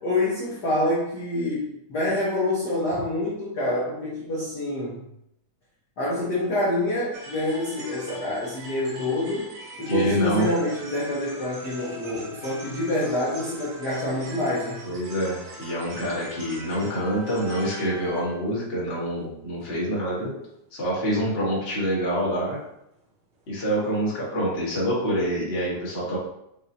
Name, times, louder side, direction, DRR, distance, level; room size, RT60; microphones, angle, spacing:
voice 1, 0.0-5.0 6.0-9.5 9.8-14.8, left 1 dB, 80° left, -7 dB, 0.9 m, -26 dB
sound 1, 7.1-18.7 19.0-19.3 19.6-19.8 20.1-20.2 20.6-20.7 20.9-21.0 21.3-21.4 21.8-21.9 22.2-22.3 22.6-22.7 22.9-23.1 23.5-23.6 23.8-23.9 24.2-24.3, right 1 dB, 60° right, 1.5 m, -42 dB
voice 2, 9.9-10.5 14.8-20.3 20.7-22.6 23.5-26.2, equal, 35° left, -6 dB, 0.9 m, -26 dB
5.3 x 3.6 x 2.7 m, 0.80 s
omnidirectional pair, 3.4 m